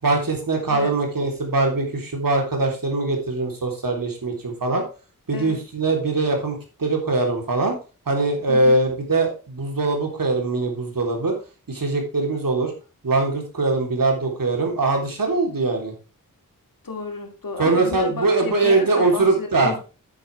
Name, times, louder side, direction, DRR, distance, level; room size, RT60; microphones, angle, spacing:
voice 1, 0.0-4.8 5.3-7.8 8.1-11.4 11.7-12.7 13.0-15.9 17.6-19.7, right 3 dB, 70° right, 1 dB, 3.7 m, -22 dB
voice 2, 8.5-8.8 16.8-19.8, left 3 dB, 70° left, 4 dB, 2.7 m, -32 dB
10.0 x 9.2 x 3.5 m, 0.33 s
wide cardioid pair, 85°, 35 cm